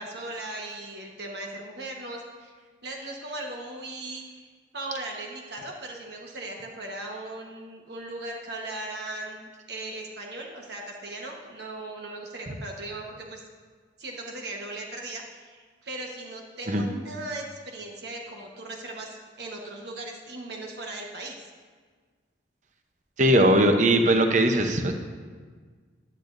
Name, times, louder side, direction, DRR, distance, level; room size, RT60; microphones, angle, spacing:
voice 1, 0.0-2.5 2.8-13.4 14.0-21.4, right 2 dB, 60° right, 0 dB, 1.2 m, -38 dB
voice 2, 23.2-24.9, right 1 dB, 40° right, 5 dB, 0.8 m, -20 dB
16.0 x 10.5 x 2.6 m, 1.5 s
head